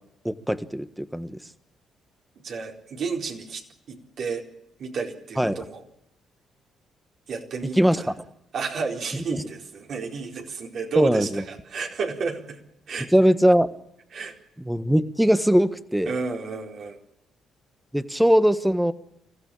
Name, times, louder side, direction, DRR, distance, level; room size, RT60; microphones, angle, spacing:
voice 1, 0.2-1.4 5.4-5.6 7.8-8.1 9.3-9.4 11.0-11.4 13.1-13.7 14.6-16.1 17.9-18.9, equal, 5° right, 12 dB, 1.4 m, -20 dB
voice 2, 2.4-4.5 4.8-5.8 7.3-8.1 8.5-12.6 12.9-13.1 14.1-14.4 16.1-17.0, right 5 dB, 60° right, 1 dB, 4.4 m, -32 dB
25.0 x 15.0 x 8.8 m, 0.81 s
cardioid pair, 90°, 0 cm